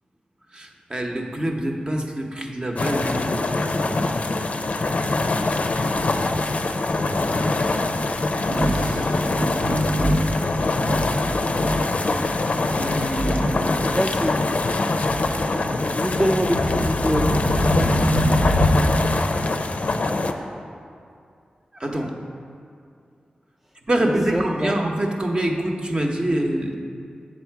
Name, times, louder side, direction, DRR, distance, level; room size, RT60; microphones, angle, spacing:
voice 1, 0.5-4.3 7.0-7.6 8.6-9.2 12.8-13.8 21.8-22.1 23.9-26.8, right 1 dB, 30° right, 1 dB, 0.9 m, -26 dB
sound 1, 2.8-20.3, left 2 dB, 55° left, 0.5 m, -24 dB
Thunder, 5.5-19.2, equal, 70° right, 0.7 m, -26 dB
voice 2, 13.8-14.4 15.9-17.4 24.0-24.8, equal, 5° right, 1 dB, 0.4 m, -25 dB
7.4 x 7.1 x 4.6 m, 2.4 s
wide cardioid pair, 75°, 3 cm